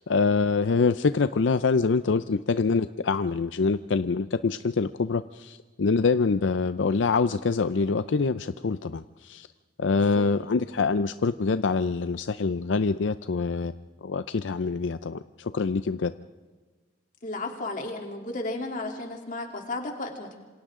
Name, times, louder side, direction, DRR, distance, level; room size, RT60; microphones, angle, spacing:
voice 1, 0.0-9.5 9.8-13.7 14.0-16.1, left 4 dB, 85° left, 12 dB, 0.5 m, -25 dB
voice 2, 17.2-20.3, left 2 dB, 45° left, 2 dB, 3.2 m, -33 dB
27.5 x 26.0 x 3.8 m, 1.3 s
head